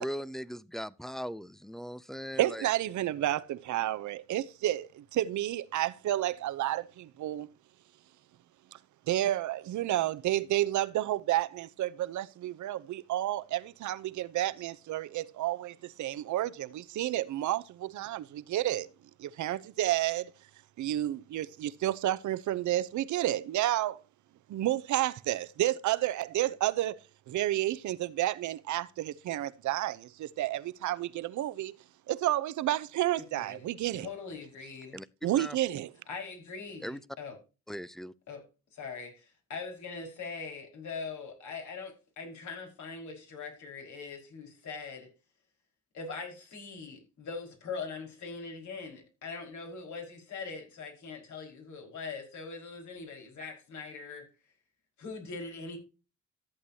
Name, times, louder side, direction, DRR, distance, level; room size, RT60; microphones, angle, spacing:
voice 1, 0.0-2.7 34.9-35.1 35.4-35.6 36.8-37.0 37.7-38.1, equal, ahead, 0.5 m, -39 dB
voice 2, 2.4-7.5 8.7-8.8 9.1-18.9 19.2-20.3 20.8-24.0 24.5-27.0 27.3-31.7 32.1-34.1 35.2-35.9, right 14 dB, 75° right, 0.8 m, -31 dB
voice 3, 33.2-33.7 33.9-35.0 36.1-37.4 38.3-38.4 38.7-45.1 45.9-54.3 55.0-55.8, left 4 dB, 70° left, 5.1 m, -42 dB
14.5 x 8.1 x 2.8 m
cardioid pair, 90°, 30 cm